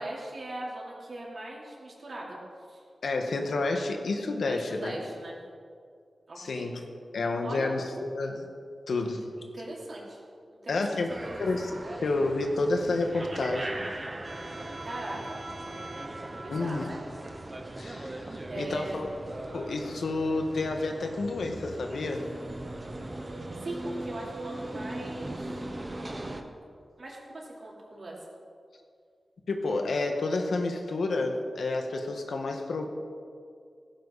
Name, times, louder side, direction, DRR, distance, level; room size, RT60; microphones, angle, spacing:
voice 1, 0.0-2.4 2.7-2.8 4.5-5.4 6.3-6.7 7.4-7.7 9.0-9.1 9.4-10.2 10.6-11.5 14.8-15.4 16.4-16.9 18.5-19.0 22.1-22.4 23.6-25.7 27.0-28.2, right 2 dB, 55° right, -4 dB, 3.9 m, -40 dB
voice 2, 3.0-5.0 6.4-6.8 7.1-8.5 8.9-9.2 10.7-11.1 11.4-11.7 12.0-13.7 16.5-16.9 17.8-19.1 19.5-22.3 29.5-32.9, left 3 dB, 90° left, 3 dB, 1.6 m, -30 dB
sound 1, 11.1-26.4, right 1 dB, 30° right, 1.2 m, -39 dB
16.5 x 15.0 x 4.2 m, 2.2 s
wide cardioid pair, 115°, 0 cm